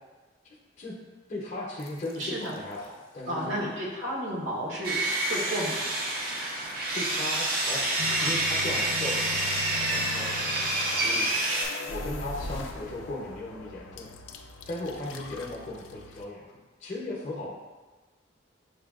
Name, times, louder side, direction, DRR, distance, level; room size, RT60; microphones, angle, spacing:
voice 1, 0.4-1.0 1.3-3.7 6.9-10.5 10.9-11.5 11.9-14.1 14.7-17.5, left 2 dB, 35° left, -4 dB, 0.6 m, -37 dB
sound 1, 1.8-2.7 8.0-16.2, left 3 dB, 85° left, 0.3 m, -40 dB
voice 2, 2.2-2.5 3.3-5.8, right 1 dB, 90° right, -4 dB, 0.9 m, -32 dB
Sawing, 4.8-11.7, right 1 dB, 50° right, 0.6 m, -28 dB
6.6 x 2.2 x 2.3 m, 1.3 s
head